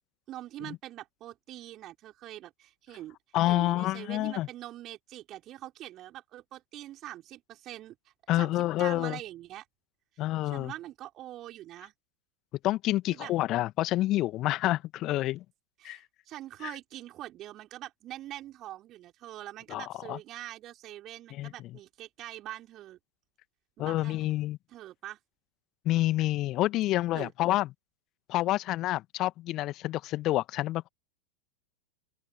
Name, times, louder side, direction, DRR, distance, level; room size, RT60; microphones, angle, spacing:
voice 1, 0.3-3.2 3.4-8.0 8.3-9.7 10.4-11.9 13.1-13.3 15.8-23.0 23.8-24.2 24.7-25.2 27.1-27.3, right 14 dB, 35° right, 5.4 m, -44 dB
voice 2, 3.3-4.5 8.3-9.2 10.2-10.7 12.6-15.4 15.8-16.0 16.6-16.7 19.7-20.2 21.3-21.5 23.8-24.6 25.9-27.7 28.3-30.9, left 16 dB, 35° left, 1.8 m, -28 dB
open air
figure-of-eight pair, 90°, 0 cm